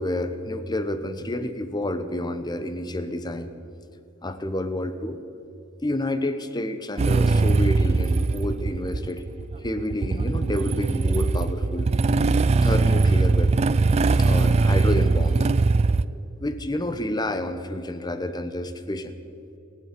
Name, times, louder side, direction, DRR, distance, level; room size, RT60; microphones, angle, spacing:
voice 1, 0.0-3.5 4.2-5.2 5.8-9.2 9.6-12.2 12.6-13.7 14.2-15.5 16.4-19.1, left 1 dB, 20° left, 10 dB, 0.8 m, -29 dB
Motorcycle / Engine starting, 7.0-16.1, right 3 dB, 30° right, 0.3 m, -21 dB
25.0 x 9.6 x 5.1 m, 2.6 s
head